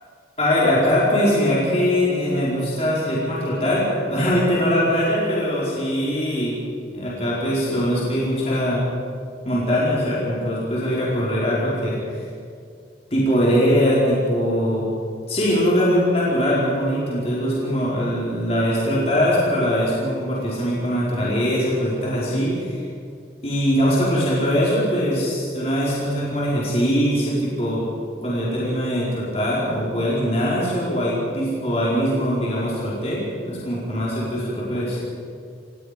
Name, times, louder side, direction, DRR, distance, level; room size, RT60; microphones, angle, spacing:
voice 1, 0.4-6.5 6.9-8.8 9.4-12.2 13.1-14.9 15.3-22.8 23.4-27.9 28.2-35.0, equal, 35° left, -7 dB, 4.8 m, -21 dB
29.0 x 18.0 x 5.3 m, 2.2 s
head